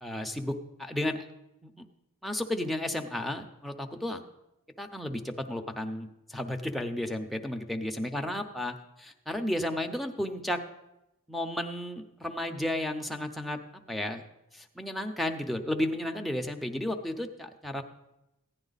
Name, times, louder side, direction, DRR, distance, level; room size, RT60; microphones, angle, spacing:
voice 1, 0.0-1.3 1.6-1.8 2.2-4.2 4.8-10.6 11.3-13.6 13.9-14.2 14.5-17.8, left 1 dB, ahead, 3 dB, 0.7 m, -33 dB
15.5 x 10.0 x 4.0 m, 0.92 s
head